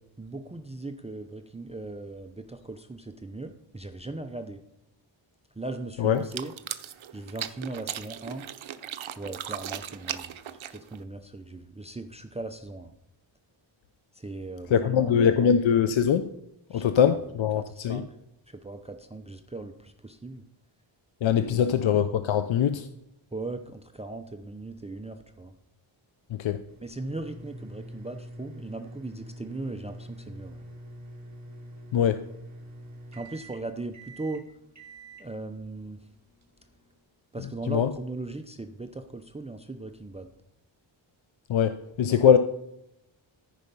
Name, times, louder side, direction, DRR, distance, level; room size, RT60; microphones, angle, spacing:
voice 1, 0.2-4.6 5.6-6.5 7.1-8.5 9.2-12.9 14.1-15.5 16.7-17.2 17.6-18.1 18.5-20.4 21.4-21.8 23.3-25.5 26.8-30.7 33.1-34.4 35.2-36.0 37.3-40.3 42.2-42.4, right 2 dB, 15° right, 0.6 m, -38 dB
sound 1, 6.2-11.0, right 10 dB, 75° right, 0.8 m, -37 dB
voice 2, 14.7-16.3 16.7-18.0 21.2-22.9 26.3-26.6 31.9-32.2 37.7-37.9 41.5-42.4, left 8 dB, 70° left, 0.7 m, -22 dB
sound 2, 26.7-37.0, right 1 dB, 35° right, 2.2 m, -45 dB
14.0 x 5.3 x 5.3 m
wide cardioid pair, 120°, 48 cm